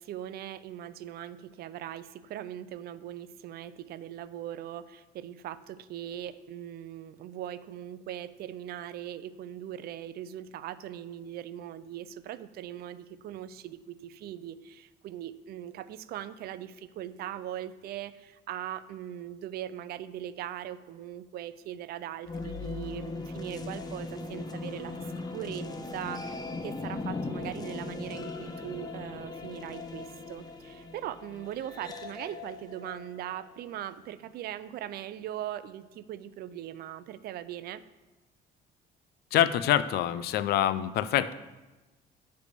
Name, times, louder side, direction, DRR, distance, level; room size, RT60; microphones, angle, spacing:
voice 1, 0.0-25.0 25.3-25.7 25.9-37.8, right 11 dB, 65° right, 14 dB, 0.5 m, -40 dB
sound 1, 22.2-34.1, left 3 dB, 25° left, 0.7 m, -39 dB
voice 2, 39.3-41.3, left 11 dB, 70° left, 14 dB, 0.4 m, -25 dB
10.0 x 3.4 x 6.7 m, 1.1 s
cardioid pair, 110°, 17 cm